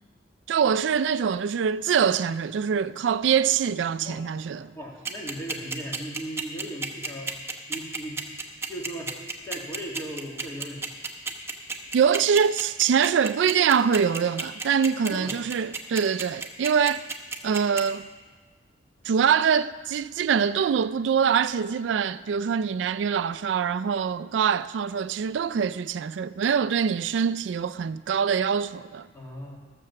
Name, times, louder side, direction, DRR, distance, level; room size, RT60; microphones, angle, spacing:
voice 1, 0.5-4.8 11.9-17.0 17.4-18.1 19.0-29.1, right 7 dB, 75° right, 0.3 m, -24 dB
voice 2, 4.7-7.3 7.7-8.2 8.7-9.1 9.4-10.9 15.1-15.4 29.1-29.6, right 1 dB, 15° left, 2.1 m, -37 dB
sound 1, 5.0-17.8, right 4 dB, 15° right, 0.9 m, -31 dB
14.5 x 6.8 x 6.9 m
head